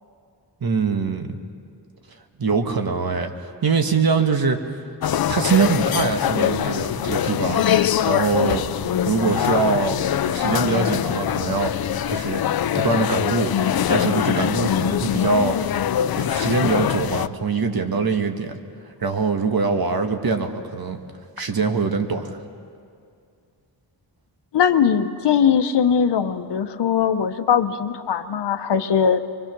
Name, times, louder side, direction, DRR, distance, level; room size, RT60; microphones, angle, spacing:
voice 1, 0.6-1.4 2.4-4.8 5.3-8.6 9.1-11.7 12.1-12.4 12.7-13.5 13.9-15.6 16.1-18.6 19.0-21.0 21.4-22.4, right 4 dB, 60° right, 5 dB, 1.5 m, -23 dB
sound 1, 5.0-17.3, left 10 dB, 60° left, 0.6 m, -23 dB
voice 2, 24.5-29.2, left 7 dB, 75° left, 9 dB, 0.9 m, -20 dB
24.5 x 21.0 x 6.1 m, 2.4 s
wide cardioid pair, 80°, 41 cm